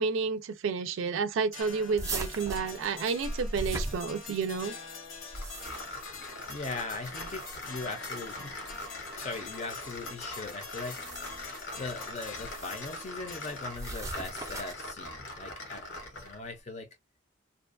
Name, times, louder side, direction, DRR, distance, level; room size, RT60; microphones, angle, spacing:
voice 1, 0.0-4.7, right 5 dB, 85° right, 0.4 m, -30 dB
sound 1, 1.5-14.0, left 4 dB, 90° left, 1.0 m, -46 dB
sound 2, 2.0-4.6 5.2-6.0 7.1-7.8 8.7-8.9 10.7-11.5 12.4-12.9 13.7-14.9, right 2 dB, 15° right, 0.4 m, -38 dB
sound 3, 5.3-16.5, left 2 dB, 65° left, 0.9 m, -42 dB
voice 2, 6.5-8.5 9.1-11.0 11.8-16.9, left 3 dB, 35° left, 0.6 m, -40 dB
2.5 x 2.2 x 2.5 m
head